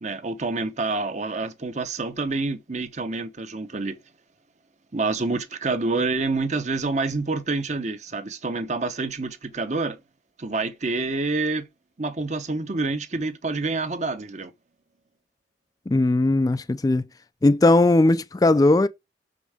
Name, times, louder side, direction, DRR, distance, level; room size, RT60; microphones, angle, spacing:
voice 1, 0.0-4.0 4.9-10.0 10.4-11.6 12.0-14.5, right 3 dB, 40° right, 0.8 m, -27 dB
voice 2, 15.9-17.0 17.4-18.9, left 2 dB, 20° left, 0.3 m, -18 dB
6.5 x 5.0 x 4.9 m
head